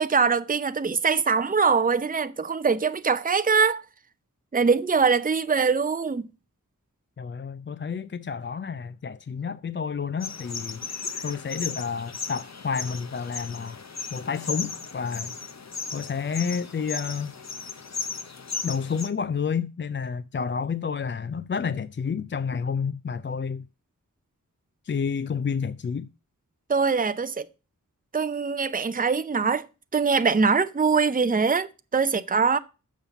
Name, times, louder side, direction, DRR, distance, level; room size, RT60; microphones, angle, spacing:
voice 1, 0.0-3.8 4.5-6.2 26.7-27.5 28.1-29.7 29.9-32.6, right 5 dB, 25° right, 0.6 m, -23 dB
voice 2, 7.2-10.8 11.2-13.8 14.1-15.4 15.9-17.4 18.6-23.7 24.8-26.1, left 6 dB, 35° left, 0.4 m, -30 dB
sound 1, 10.2-19.1, left 4 dB, 55° left, 0.8 m, -36 dB
7.3 x 5.5 x 6.8 m
wide cardioid pair, 50°, 33 cm